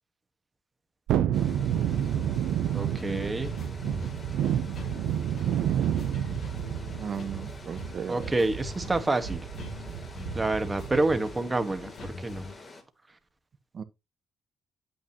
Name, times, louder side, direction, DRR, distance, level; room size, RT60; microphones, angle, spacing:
Thunderstorm, 1.1-11.3 11.6-11.7, right 10 dB, 85° right, 0.8 m, -30 dB
sound 1, 1.3-12.8, left 2 dB, 35° left, 3.3 m, -47 dB
voice 1, 2.7-3.6 8.1-9.5 10.3-12.5, right 2 dB, 20° right, 1.6 m, -28 dB
sound 2, 3.0-12.5, left 3 dB, 70° left, 3.9 m, -43 dB
voice 2, 7.0-8.3 13.7-13.8, right 7 dB, 50° right, 1.2 m, -36 dB
8.7 x 8.6 x 3.0 m
cardioid pair, 90°, 0 cm